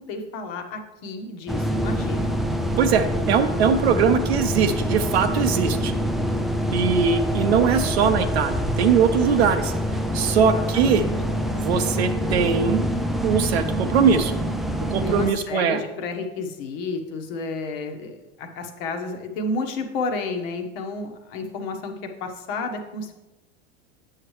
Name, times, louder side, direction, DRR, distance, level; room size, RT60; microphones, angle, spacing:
voice 1, 0.1-2.4 10.3-11.1 15.0-23.2, left 3 dB, 60° left, 5 dB, 1.2 m, -31 dB
sound 1, 1.5-15.3, equal, ahead, 0.4 m, -25 dB
voice 2, 2.8-5.9 6.7-9.7 10.1-11.1 11.5-12.8 13.2-14.3 14.9-15.8, right 6 dB, 75° right, 9 dB, 0.8 m, -21 dB
8.6 x 6.5 x 3.1 m, 1.0 s
hypercardioid pair, 90°, 33 cm